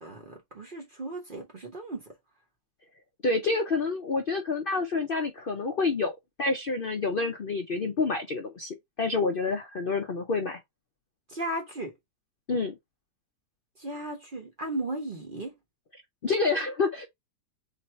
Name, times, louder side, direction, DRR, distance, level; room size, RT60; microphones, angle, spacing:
voice 1, 0.0-2.1 11.3-11.9 13.8-15.5, right 1 dB, 40° right, 0.8 m, -36 dB
voice 2, 3.2-10.6 12.5-12.7 16.2-17.1, left 3 dB, 80° left, 0.5 m, -28 dB
3.9 x 2.7 x 4.3 m
omnidirectional pair, 2.0 m